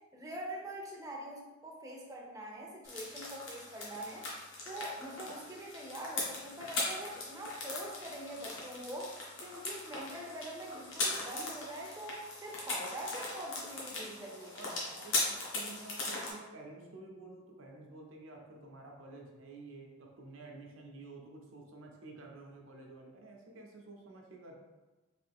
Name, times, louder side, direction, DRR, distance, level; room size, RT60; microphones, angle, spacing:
voice 1, 0.1-4.3 4.7-14.6 14.9-15.0, right 1 dB, 15° right, -2 dB, 0.5 m, -44 dB
sound 1, 2.8-16.3, left 2 dB, 70° left, 1.0 m, -39 dB
voice 2, 14.0-24.5, right 2 dB, 80° right, 1 dB, 0.6 m, -51 dB
3.4 x 2.6 x 3.4 m, 1.2 s
head